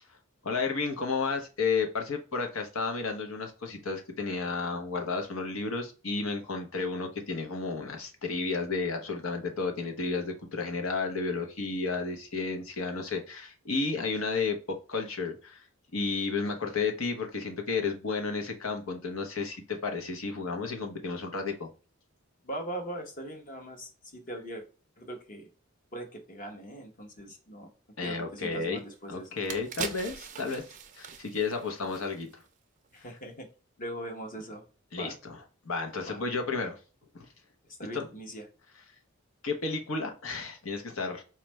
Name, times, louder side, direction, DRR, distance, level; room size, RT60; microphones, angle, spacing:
voice 1, 0.4-14.6 14.9-15.6 15.9-21.7 28.0-28.8 29.1-30.6 30.9-32.4 34.9-36.8 37.1-37.3 37.9-38.0 39.4-41.2, left 4 dB, 75° left, 4 dB, 0.9 m, -32 dB
voice 2, 22.4-24.6 25.0-25.5 25.9-27.7 28.0-29.4 32.9-33.5 33.8-34.6 34.9-35.2 36.0-36.2 37.8-38.4, right 1 dB, 40° left, 4 dB, 0.9 m, -40 dB
sound 1, 28.8-28.9 29.3-32.5 32.8-33.0, right 6 dB, 40° right, 0.4 m, -41 dB
4.3 x 2.4 x 3.1 m, 0.35 s
head